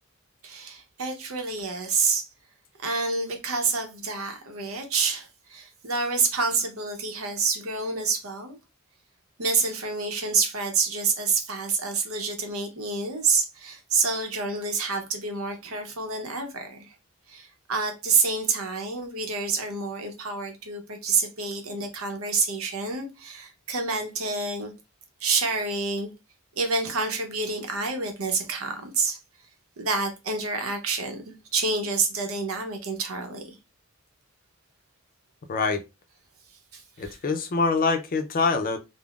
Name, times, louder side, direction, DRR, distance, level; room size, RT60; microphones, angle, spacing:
voice 1, 0.4-2.3 2.8-8.6 9.4-16.9 17.3-24.7 25.2-26.1 26.6-29.2 29.8-33.6 36.7-37.1, right 4 dB, 85° right, 0.7 m, -28 dB
voice 2, 35.5-35.8 37.0-38.8, left 4 dB, 40° left, 0.4 m, -24 dB
3.5 x 2.0 x 2.3 m
head